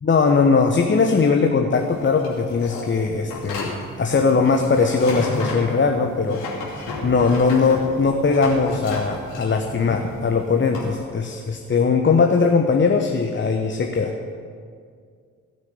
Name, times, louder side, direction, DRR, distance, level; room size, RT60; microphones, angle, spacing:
voice 1, 0.0-6.4 7.0-14.1, left 4 dB, 25° left, 4 dB, 1.1 m, -20 dB
sound 1, 1.8-10.9, left 3 dB, 70° left, 2.8 m, -33 dB
sound 2, 3.1-10.9, right 1 dB, 45° left, 3.3 m, -42 dB
17.5 x 6.4 x 8.0 m, 2.2 s
figure-of-eight pair, 40°, 42 cm